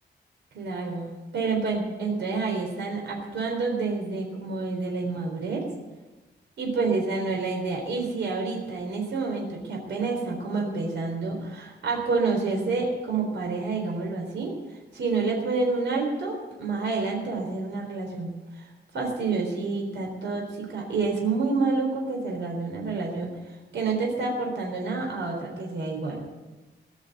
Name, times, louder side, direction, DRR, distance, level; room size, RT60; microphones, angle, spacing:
voice 1, 0.5-5.7 6.6-14.5 14.9-18.3 18.6-18.7 18.9-23.3 23.7-26.2, right 4 dB, 85° right, -1 dB, 3.9 m, -28 dB
20.0 x 6.7 x 9.3 m, 1.1 s
wide cardioid pair, 125°, 18 cm